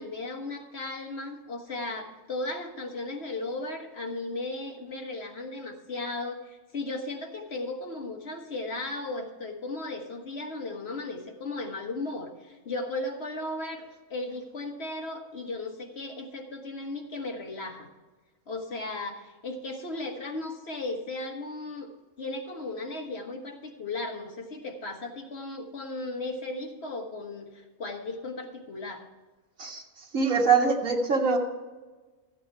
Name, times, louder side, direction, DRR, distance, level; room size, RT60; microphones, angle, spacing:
voice 1, 0.0-17.9 18.5-21.9 22.2-29.0, left 2 dB, 50° left, 2 dB, 1.6 m, -36 dB
voice 2, 30.1-31.4, right 5 dB, 75° right, 0 dB, 2.1 m, -23 dB
13.5 x 8.6 x 4.6 m, 1.3 s
omnidirectional pair, 1.4 m